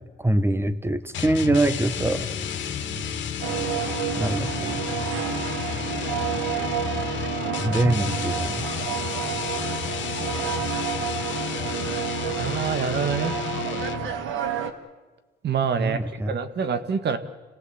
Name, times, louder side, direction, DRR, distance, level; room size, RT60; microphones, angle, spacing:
voice 1, 0.0-2.3 4.1-4.8 7.6-8.7 15.8-16.3, right 1 dB, 10° right, 14 dB, 1.3 m, -24 dB
sound 1, 1.1-14.2, left 8 dB, 65° left, 2.1 m, -31 dB
sound 2, 3.4-14.7, right 9 dB, 85° right, 1.9 m, -30 dB
voice 2, 12.2-13.4 15.4-17.2, right 6 dB, 60° right, 10 dB, 1.8 m, -26 dB
27.5 x 17.5 x 8.2 m, 1.2 s
cardioid pair, 90°, 20 cm